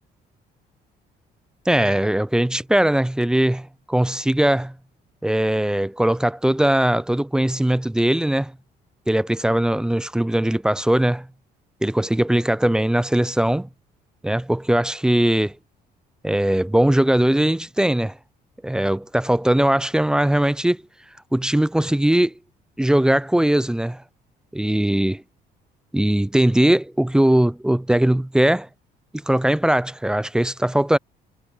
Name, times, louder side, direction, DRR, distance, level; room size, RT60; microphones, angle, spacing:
voice 1, 1.7-4.7 5.2-8.5 9.1-11.3 11.8-13.7 14.2-15.5 16.2-18.2 18.6-20.8 21.3-22.3 22.8-24.0 24.5-25.2 25.9-28.7 29.1-31.0, right 1 dB, 5° right, 0.3 m, -20 dB
cardioid pair, 110°, 17 cm